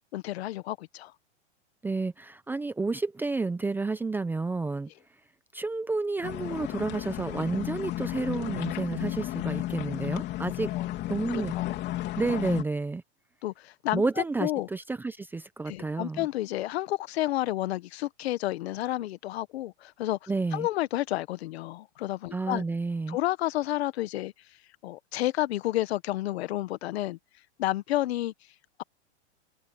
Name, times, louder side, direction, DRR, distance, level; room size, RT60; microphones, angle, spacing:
voice 1, 0.1-1.1 10.8-10.9 11.3-11.8 13.4-14.0 14.4-14.7 15.7-22.6 23.1-24.3 24.8-27.2 27.6-28.3, left 15 dB, 65° left, 1.3 m, -30 dB
voice 2, 1.8-4.9 5.5-10.8 11.1-11.5 12.2-13.0 13.9-16.3 20.3-20.7 22.3-23.2, right 3 dB, 5° right, 0.6 m, -30 dB
sound 1, 6.2-12.6, left 15 dB, 30° left, 3.3 m, -33 dB
hypercardioid pair, 145°, 34 cm